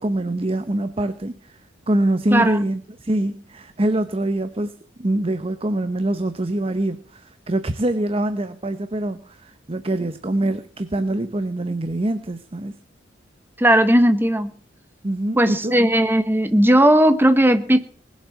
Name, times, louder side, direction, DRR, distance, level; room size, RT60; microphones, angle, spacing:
voice 1, 0.0-1.6 1.9-12.7 15.0-15.8, right 1 dB, 30° right, 0.8 m, -24 dB
voice 2, 13.6-14.5 15.4-17.8, right 1 dB, 10° right, 1.1 m, -16 dB
20.0 x 7.4 x 7.3 m
head